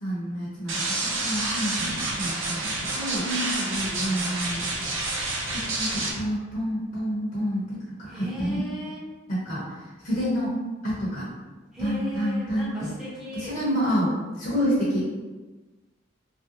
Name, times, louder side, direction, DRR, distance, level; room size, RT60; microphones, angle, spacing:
voice 1, 0.0-3.2 4.1-4.6 5.5-8.6 9.3-9.6 10.0-10.5 10.8-11.3 11.8-12.9 13.3-15.2, equal, 45° left, -9 dB, 0.9 m, -28 dB
sound 1, 0.7-6.1, right 2 dB, 80° right, 0.7 m, -29 dB
voice 2, 3.2-4.3 8.1-9.1 11.7-13.6, equal, ahead, -8 dB, 0.8 m, -34 dB
3.1 x 2.6 x 2.9 m, 1.2 s
head